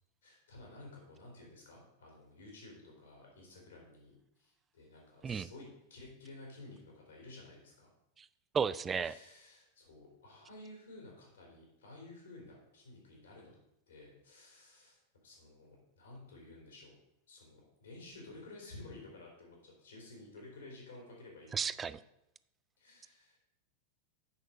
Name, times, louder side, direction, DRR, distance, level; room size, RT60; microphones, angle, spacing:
voice 1, 0.2-7.9 9.0-13.5 13.9-16.9 17.3-21.8 22.8-23.4, left 2 dB, 65° left, -1 dB, 3.8 m, -53 dB
voice 2, 8.5-9.2 21.5-22.0, right 6 dB, 20° right, 17 dB, 0.3 m, -33 dB
8.3 x 6.4 x 5.2 m, 0.84 s
figure-of-eight pair, 90°, 0 cm